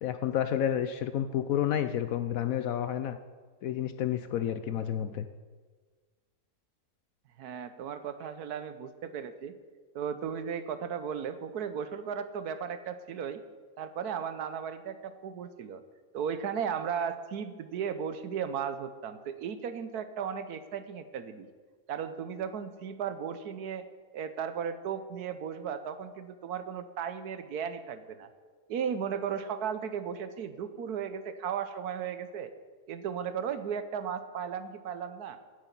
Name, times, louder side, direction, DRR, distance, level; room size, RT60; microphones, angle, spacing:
voice 1, 0.0-3.2 3.6-5.3, left 10 dB, 70° left, 10 dB, 0.9 m, -30 dB
voice 2, 7.4-9.6 9.9-13.4 13.8-15.8 16.1-21.5 21.9-23.9 24.1-28.3 28.7-32.5 32.9-35.4, right 7 dB, 75° right, 11 dB, 1.3 m, -35 dB
9.7 x 8.2 x 8.3 m, 1.5 s
omnidirectional pair, 1.7 m